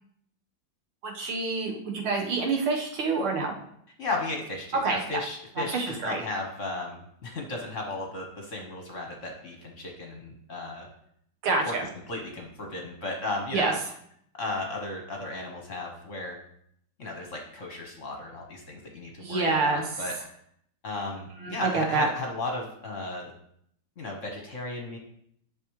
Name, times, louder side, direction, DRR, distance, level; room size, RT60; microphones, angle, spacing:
voice 1, 1.0-3.5 4.8-5.0 5.6-6.2 11.4-11.9 13.5-13.7 19.2-19.8 21.4-22.1, right 4 dB, 90° right, 1 dB, 2.1 m, -27 dB
voice 2, 4.0-10.9 11.6-11.7 12.1-13.7 14.4-16.4 17.0-20.1 20.8-23.3 24.0-25.0, left 2 dB, 45° left, 1 dB, 1.2 m, -35 dB
10.5 x 5.4 x 3.1 m, 0.70 s
omnidirectional pair, 2.2 m